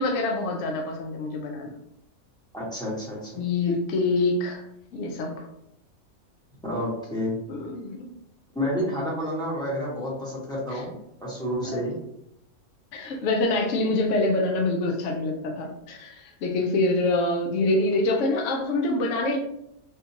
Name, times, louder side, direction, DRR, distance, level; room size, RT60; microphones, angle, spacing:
voice 1, 0.0-1.7 3.4-4.6 4.9-5.5 7.5-8.1 10.7-10.8 11.6-11.8 12.9-19.4, left 2 dB, 65° left, 2 dB, 0.9 m, -25 dB
voice 2, 2.5-3.4 6.6-7.4 8.5-10.9 11.2-11.9, equal, 5° left, -7 dB, 1.1 m, -29 dB
3.5 x 2.7 x 2.8 m, 0.80 s
omnidirectional pair, 1.5 m